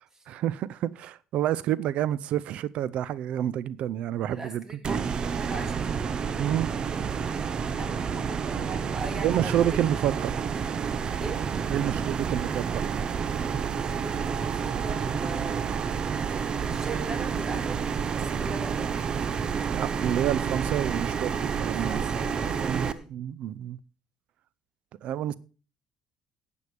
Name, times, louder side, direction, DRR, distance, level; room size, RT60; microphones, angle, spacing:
voice 1, 0.3-4.6 5.7-5.8 6.4-6.7 9.2-10.3 11.7-12.9 19.7-22.0 22.6-23.8 25.0-25.3, right 11 dB, 70° right, 0.6 m, -29 dB
voice 2, 4.3-5.1 5.4-5.9 7.8-9.6 11.2-11.4 13.7-15.8 16.6-17.8 18.1-18.9 21.6-23.1, right 2 dB, 25° right, 3.1 m, -40 dB
sound 1, 4.8-22.9, right 6 dB, 40° right, 0.8 m, -29 dB
12.5 x 8.3 x 4.9 m
cardioid pair, 95°, 2 cm